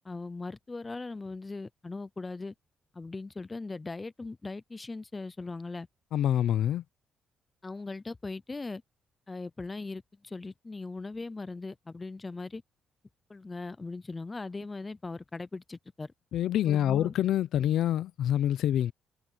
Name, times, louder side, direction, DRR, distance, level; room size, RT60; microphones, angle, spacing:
voice 1, 0.0-2.5 2.9-5.9 7.6-8.8 9.3-12.6 13.3-16.1 16.7-17.1, left 3 dB, 25° left, 0.6 m, -39 dB
voice 2, 6.1-6.8 16.3-18.9, left 11 dB, 75° left, 0.7 m, -26 dB
cardioid pair, 90°, 0 cm